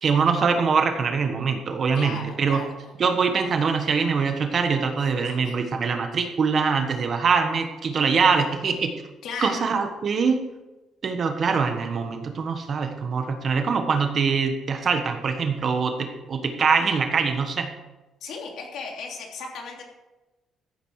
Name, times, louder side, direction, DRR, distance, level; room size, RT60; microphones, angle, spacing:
voice 1, 0.0-2.6 3.0-8.9 9.4-10.4 11.0-17.7, right 5 dB, 40° right, 6 dB, 1.3 m, -23 dB
voice 2, 1.9-2.9 5.0-5.6 9.2-9.6 18.2-19.8, left 4 dB, 70° left, 1 dB, 3.1 m, -36 dB
14.5 x 9.1 x 4.8 m, 1.1 s
cardioid pair, 150°, 0 cm